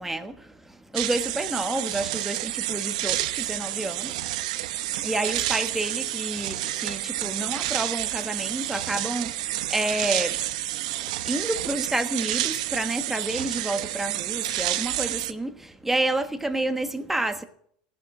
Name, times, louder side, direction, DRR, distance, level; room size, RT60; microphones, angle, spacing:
voice 1, 0.0-17.4, right 2 dB, 5° right, 1.3 m, -30 dB
sound 1, 0.9-15.3, right 15 dB, 75° right, 0.8 m, -29 dB
16.5 x 6.3 x 8.9 m
supercardioid pair, 120°, 4 cm